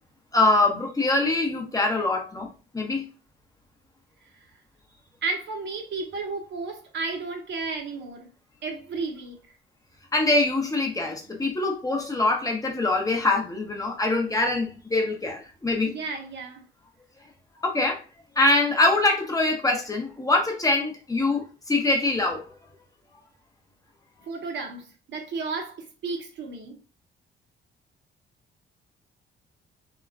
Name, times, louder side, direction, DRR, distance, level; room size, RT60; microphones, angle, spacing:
voice 1, 0.3-2.5 2.7-3.1 10.1-15.9 17.6-18.0 18.4-22.5, left 2 dB, 15° left, 0.7 m, -24 dB
voice 2, 5.2-8.3 8.6-9.4 15.9-16.6 24.2-26.8, right 4 dB, 65° right, 0.8 m, -33 dB
2.9 x 2.2 x 2.4 m
cardioid pair, 90°, 20 cm